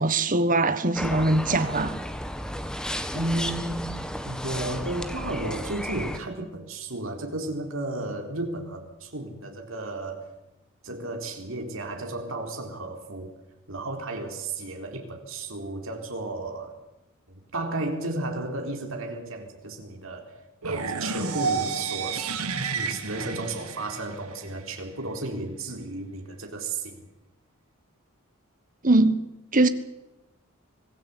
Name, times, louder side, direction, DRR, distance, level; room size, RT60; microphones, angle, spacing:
voice 1, 0.0-1.9 28.8-29.3 29.5-29.7, right 2 dB, 35° right, 1.4 m, -21 dB
sound 1, 1.0-6.2, equal, 5° left, 1.3 m, -33 dB
voice 2, 3.1-3.9 4.2-10.3 10.8-13.4 13.7-16.8 17.3-20.3 20.6-27.0, right 2 dB, 60° right, 4.0 m, -33 dB
sound 2, 20.6-24.6, right 4 dB, 85° right, 2.0 m, -30 dB
25.0 x 17.0 x 8.5 m
head